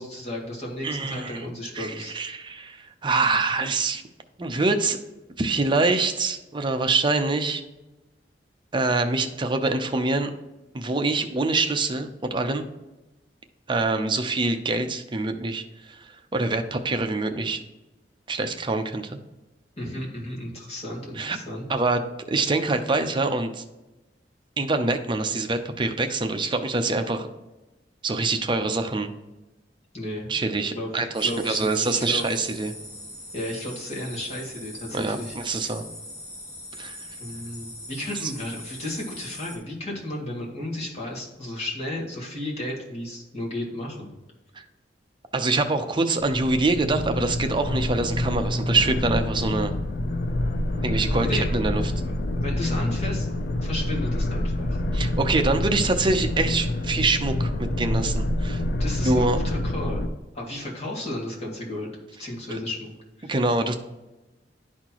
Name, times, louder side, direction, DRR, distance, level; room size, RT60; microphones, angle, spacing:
voice 1, 0.0-2.2 19.8-21.7 29.9-30.4 30.7-32.2 33.3-35.3 37.2-44.1 51.2-51.7 52.0-53.3 53.6-54.8 58.8-61.9 62.2-62.9 63.2-63.3, left 1 dB, 40° left, -3 dB, 2.2 m, -33 dB
voice 2, 0.8-1.4 1.7-4.0 4.4-5.0 5.4-7.6 8.7-10.3 10.7-12.6 13.7-16.0 16.3-17.6 18.3-19.2 21.2-21.4 21.7-22.0 22.3-23.6 24.6-27.3 28.0-29.1 30.3-32.7 34.9-35.8 36.8-37.0 38.2-38.3 44.6-44.7 45.3-49.7 50.8-51.8 54.9-57.5 57.8-58.6 59.0-59.4 63.2-63.7, right 3 dB, 30° right, 6 dB, 0.6 m, -25 dB
sound 1, 31.1-39.6, left 1 dB, 15° left, 1.5 m, -41 dB
sound 2, 46.2-60.1, left 1 dB, 65° left, 0.5 m, -27 dB
11.5 x 4.3 x 3.0 m, 1.0 s
head